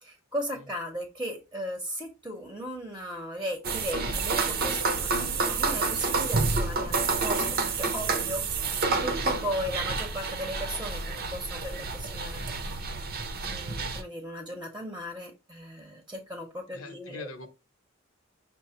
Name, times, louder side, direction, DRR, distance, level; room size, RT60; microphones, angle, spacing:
voice 1, 0.0-12.5 13.4-17.3, equal, 5° right, 0.8 m, -37 dB
sound 1, 3.6-14.0, right 4 dB, 45° right, 0.6 m, -29 dB
voice 2, 16.7-17.5, left 3 dB, 85° left, 1.0 m, -43 dB
5.9 x 2.1 x 4.2 m
head